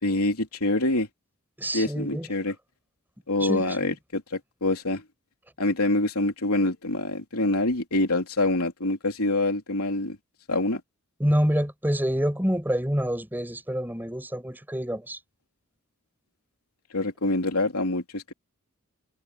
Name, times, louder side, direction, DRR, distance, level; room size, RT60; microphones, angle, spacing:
voice 1, 0.0-1.1 1.7-2.5 3.3-5.0 5.6-10.2 10.5-10.8 16.9-18.3, left 2 dB, 85° left, 3.3 m, -25 dB
voice 2, 1.6-2.3 3.4-3.9 11.2-15.2, equal, 10° right, 6.0 m, -27 dB
head